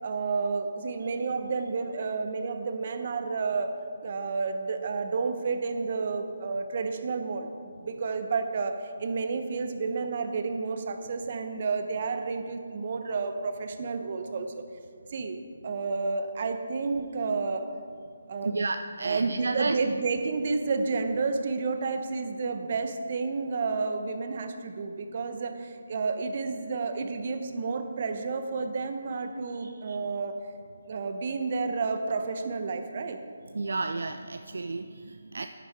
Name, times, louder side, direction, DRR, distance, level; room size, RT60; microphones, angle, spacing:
voice 1, 0.0-3.7 4.0-7.5 7.8-14.6 15.1-17.7 18.3-18.6 19.0-30.4 30.9-33.2, right 4 dB, 45° right, 7 dB, 0.9 m, -31 dB
voice 2, 18.4-19.8 29.6-30.0 33.5-35.5, right 3 dB, 65° right, 8 dB, 0.4 m, -31 dB
10.5 x 9.9 x 3.7 m, 2.2 s
figure-of-eight pair, 150°, 0 cm